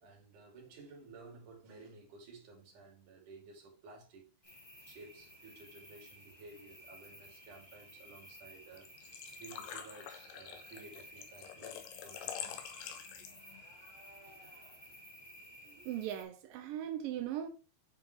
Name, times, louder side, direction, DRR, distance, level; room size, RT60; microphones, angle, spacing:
voice 1, 0.0-12.5 14.2-14.5, right 3 dB, 55° right, 3.9 m, -55 dB
sound 1, 4.4-16.2, equal, 35° left, 0.6 m, -55 dB
Engine / Trickle dribble / Fill (with liquid), 8.8-13.6, left 9 dB, 80° left, 2.9 m, -46 dB
voice 2, 15.7-17.5, right 11 dB, 80° right, 2.1 m, -39 dB
8.8 x 5.5 x 3.2 m
omnidirectional pair, 4.8 m